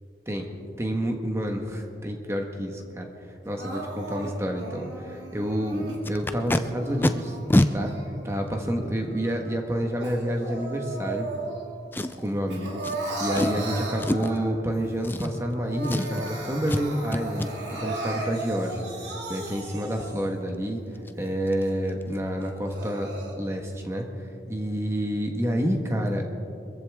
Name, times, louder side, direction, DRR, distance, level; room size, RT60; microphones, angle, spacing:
voice 1, 0.8-3.1 3.4-7.4 7.7-7.9 8.2-11.3 12.2-20.8 21.2-23.1 23.4-24.1 24.5-26.3, equal, 15° right, 2 dB, 1.4 m, -29 dB
Crying sobbing, 3.6-6.0 6.6-8.4 8.9-11.8 12.1-14.8 15.2-15.3 15.6-20.4 20.9-21.0 21.6-21.7 22.4-23.3, right 2 dB, 90° right, 2.7 m, -36 dB
Packing tape duct tape, 6.0-6.6 7.0-7.1 7.5-7.7 8.5-8.6 11.9-12.3 12.8-13.0 13.3-13.6 14.0-14.4 15.0-15.6 15.8-16.3 16.7-16.8 17.1-17.5 20.5-20.6 20.9-21.1 21.5-21.6 21.9-22.2 22.4-22.5, left 1 dB, 10° left, 0.4 m, -25 dB
24.0 x 15.0 x 3.6 m, 2.5 s
head